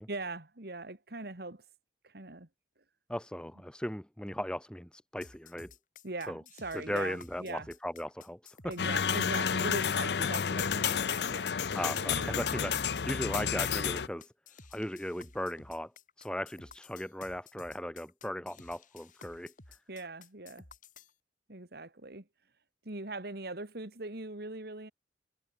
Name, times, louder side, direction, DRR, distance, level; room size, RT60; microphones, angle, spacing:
voice 1, 0.1-1.7 2.0-2.5 6.0-7.7 8.6-11.8 12.2-12.3 19.9-20.7 21.5-22.2 22.9-24.9, right 2 dB, 60° right, 2.1 m, -41 dB
voice 2, 3.1-5.7 6.3-6.4 6.7-8.7 11.7-12.8 13.1-14.3 14.7-15.9 16.2-19.5, equal, 5° left, 1.4 m, -37 dB
sound 1, 5.2-21.1, left 5 dB, 45° left, 5.2 m, -54 dB
sound 2, 8.8-14.1, left 7 dB, 60° left, 0.6 m, -31 dB
head